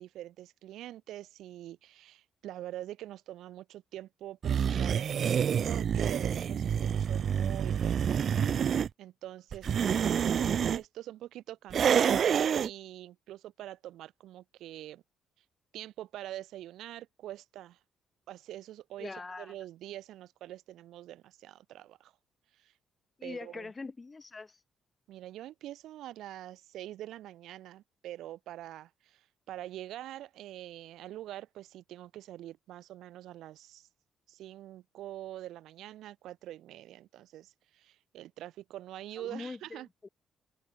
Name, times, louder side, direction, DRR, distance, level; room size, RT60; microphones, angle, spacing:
voice 1, 0.0-8.3 9.0-15.0 15.7-17.8 18.3-22.1 22.6-22.7 23.2-23.7 25.1-33.9 34.3-39.9, right 13 dB, 85° right, 2.7 m, -45 dB
sound 1, 4.4-8.9 9.5-10.8 11.7-12.7, right 8 dB, 55° right, 0.6 m, -27 dB
voice 2, 19.0-19.5 23.2-24.6 39.2-40.1, left 3 dB, 25° left, 6.3 m, -43 dB
cardioid pair, 90°, 0 cm